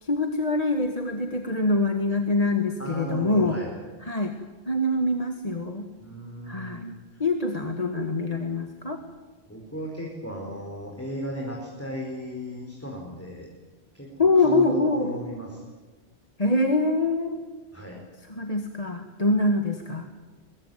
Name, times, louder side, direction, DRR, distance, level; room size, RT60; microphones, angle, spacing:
voice 1, 0.0-3.6 4.0-4.3 4.7-5.9 6.5-6.8 7.2-9.0 14.2-15.1 16.4-17.4 18.3-20.1, left 2 dB, 35° left, 5 dB, 1.8 m, -24 dB
voice 2, 2.8-3.8 6.0-6.9 9.5-13.5 13.9-15.6 17.7-18.0, equal, 15° left, 0 dB, 4.8 m, -35 dB
24.5 x 22.5 x 9.4 m, 1.3 s
omnidirectional pair, 1.1 m